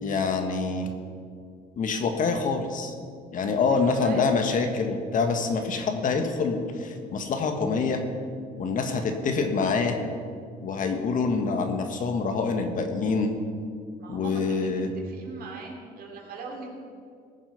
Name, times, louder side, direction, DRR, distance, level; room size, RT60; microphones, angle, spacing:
voice 1, 0.0-0.9 1.8-2.9 3.3-8.0 8.6-10.0 10.6-13.3 14.1-14.9, left 4 dB, 50° left, 5 dB, 1.6 m, -26 dB
voice 2, 3.6-4.3 8.8-9.1 14.0-16.7, right 4 dB, 65° right, 0 dB, 3.1 m, -41 dB
19.0 x 7.3 x 5.9 m, 2.2 s
cardioid pair, 110°, 17 cm